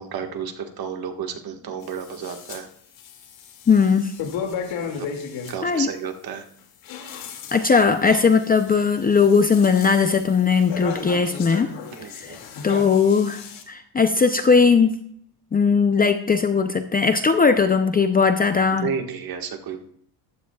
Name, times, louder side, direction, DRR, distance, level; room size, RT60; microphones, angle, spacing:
voice 1, 0.0-2.7 4.9-5.1 5.4-6.5 11.9-12.4 18.7-19.9, right 7 dB, 50° right, 4 dB, 1.6 m, -32 dB
sound 1, 1.8-2.6 2.9-5.5 6.6-13.6, left 6 dB, 70° left, 2.4 m, -35 dB
voice 2, 3.7-4.1 5.6-5.9 7.5-11.7 12.2-12.4 12.6-15.0 15.5-18.9, left 5 dB, 20° left, 8 dB, 0.5 m, -19 dB
15.0 x 12.0 x 2.3 m, 0.66 s
cardioid pair, 145°, 46 cm